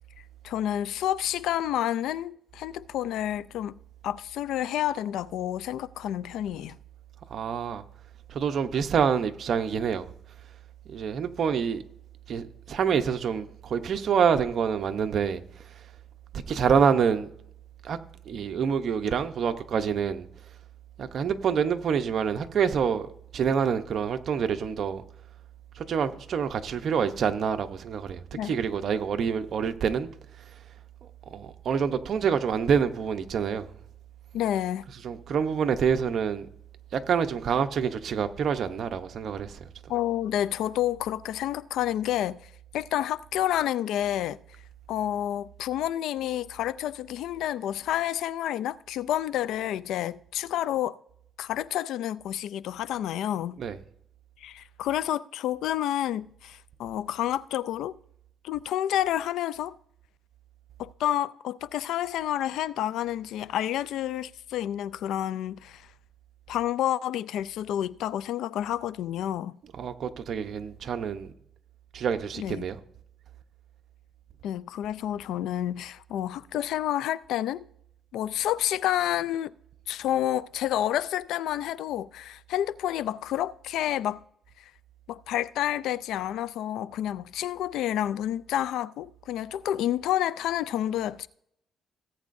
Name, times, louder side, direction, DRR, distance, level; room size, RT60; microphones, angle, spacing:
voice 1, 0.4-3.7 4.0-6.8 28.3-28.6 34.3-34.8 39.9-42.5 42.7-44.4 44.9-51.0 51.4-53.6 54.4-58.0 58.4-59.8 60.8-65.9 66.5-69.6 72.4-72.7 74.4-77.7 78.1-79.5 79.9-84.2 85.1-91.3, left 12 dB, 85° left, 0.4 m, -29 dB
voice 2, 7.3-7.8 8.3-10.1 10.9-11.8 12.3-15.4 16.5-17.3 17.8-18.0 18.3-20.3 21.0-25.0 25.8-30.1 31.3-33.7 35.0-36.5 36.9-39.7 53.6-53.8 69.8-71.3 71.9-72.8, right 7 dB, 60° right, 0.8 m, -27 dB
18.0 x 8.4 x 2.6 m
cardioid pair, 90°, 0 cm